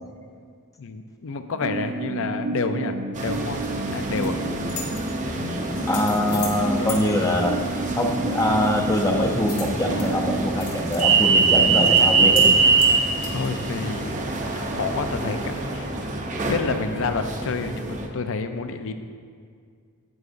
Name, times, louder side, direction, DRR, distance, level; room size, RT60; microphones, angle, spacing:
voice 1, 0.8-3.6 3.9-4.4 6.8-7.0 13.3-15.9 16.5-18.9, left 4 dB, 60° left, 8 dB, 0.5 m, -29 dB
sound 1, 1.5-10.4, right 1 dB, 80° right, 1.2 m, -31 dB
sound 2, 3.2-18.1, right 4 dB, 35° right, 0.7 m, -24 dB
sound 3, 3.9-4.3 4.7-5.0 5.7-6.6 6.9-7.0 9.5-10.1 10.4-11.0 11.4-11.5 11.8-12.0 12.3-12.5 12.8-13.5, left 6 dB, 80° left, 1.7 m, -36 dB
voice 2, 5.9-7.6 7.9-12.5, left 1 dB, 15° left, 2 dB, 0.6 m, -23 dB
9.5 x 8.1 x 2.6 m, 2.1 s
head